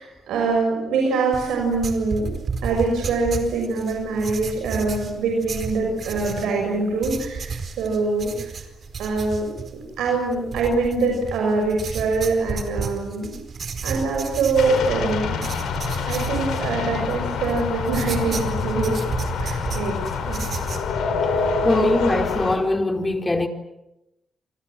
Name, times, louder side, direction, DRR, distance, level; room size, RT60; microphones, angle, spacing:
voice 1, 0.0-2.3 2.6-8.5 9.0-13.4 13.8-15.4 16.1-19.0 19.4-20.0 20.3-20.5, right 3 dB, 80° right, 6.2 m, -24 dB
sound 1, 1.3-20.9, right 5 dB, 60° right, 4.5 m, -33 dB
sound 2, 14.6-22.6, left 5 dB, 80° left, 4.7 m, -26 dB
voice 2, 21.2-23.5, left 2 dB, 20° left, 4.4 m, -22 dB
29.5 x 25.0 x 7.7 m
supercardioid pair, 45°, 0 cm